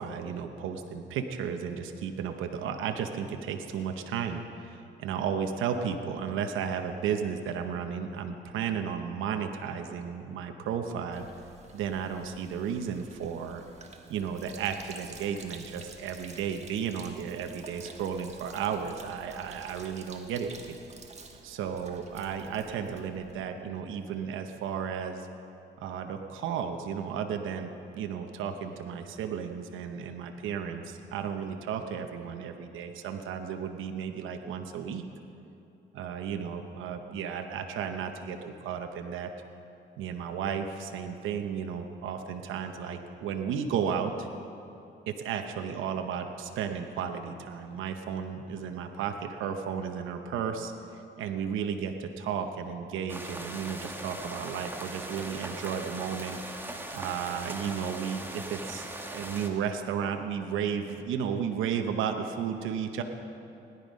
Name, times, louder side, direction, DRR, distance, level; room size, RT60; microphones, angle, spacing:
voice 1, 0.0-11.3 11.7-13.6 14.1-20.5 21.4-25.3 25.8-35.0 35.9-39.3 40.0-44.3 45.1-50.7 51.2-63.0, right 7 dB, 85° right, 6 dB, 0.9 m, -33 dB
Sink (filling or washing), 11.1-23.5, right 3 dB, 35° right, 1.5 m, -50 dB
sound 1, 53.1-59.5, right 1 dB, 10° right, 1.4 m, -40 dB
17.5 x 11.0 x 5.3 m, 2.8 s
cardioid pair, 90°, 20 cm